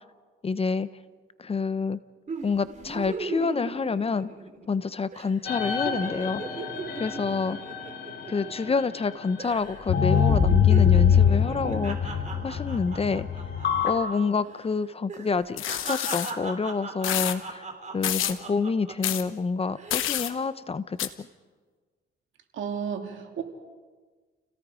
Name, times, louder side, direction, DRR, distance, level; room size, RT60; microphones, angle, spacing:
voice 1, 0.4-0.9 1.4-2.0 2.4-4.3 4.7-6.6 7.0-7.6 8.3-12.1 12.4-13.3 13.8-17.6 17.9-21.3, left 4 dB, 30° left, 15 dB, 0.8 m, -28 dB
sound 1, 2.3-4.8 5.1-5.3 5.6-9.1 9.4-9.8 10.1-14.2 14.4-14.6 15.1-19.2 19.7-20.1, right 4 dB, 35° right, 3.6 m, -38 dB
sound 2, 5.4-9.1 9.8-13.9, left 7 dB, 60° left, 3.5 m, -24 dB
sound 3, 15.6-16.3 17.0-17.4 18.0-18.4 19.0-19.2 19.9-20.3 21.0-21.1, left 12 dB, 85° left, 1.1 m, -28 dB
voice 2, 22.5-23.4, right 7 dB, 75° right, 4 dB, 2.8 m, -32 dB
30.0 x 17.5 x 5.1 m, 1.4 s
cardioid pair, 90°, 20 cm